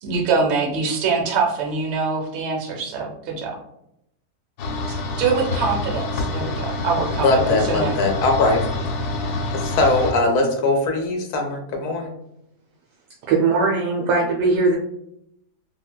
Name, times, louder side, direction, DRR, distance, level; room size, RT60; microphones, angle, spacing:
voice 1, 0.0-3.6 4.9-8.0, right 4 dB, 60° right, 1 dB, 0.7 m, -24 dB
sound 1, 4.6-10.1, left 2 dB, 90° left, 1.2 m, -27 dB
voice 2, 7.1-8.6 9.5-12.1, left 2 dB, 65° left, 2 dB, 0.9 m, -20 dB
voice 3, 13.3-14.8, right 4 dB, 90° right, -2 dB, 1.2 m, -19 dB
3.8 x 2.2 x 2.2 m, 0.78 s
omnidirectional pair, 1.7 m